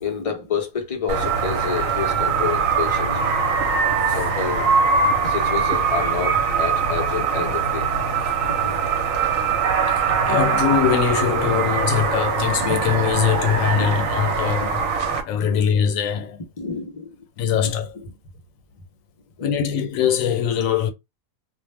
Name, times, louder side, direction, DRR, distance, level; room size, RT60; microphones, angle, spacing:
voice 1, 0.0-3.4 4.1-4.7 5.2-7.9 8.5-9.0 12.6-12.8 13.6-13.9 14.6-14.7 15.4-15.6 16.6-17.1 19.4-19.7, left 6 dB, 40° left, 0.5 m, -29 dB
sound 1, 1.1-15.2, right 5 dB, 80° right, 1.0 m, -22 dB
voice 2, 9.9-14.8 15.2-16.4 17.4-18.0 19.4-20.9, left 8 dB, 90° left, 1.0 m, -22 dB
2.4 x 2.0 x 3.2 m
omnidirectional pair, 1.4 m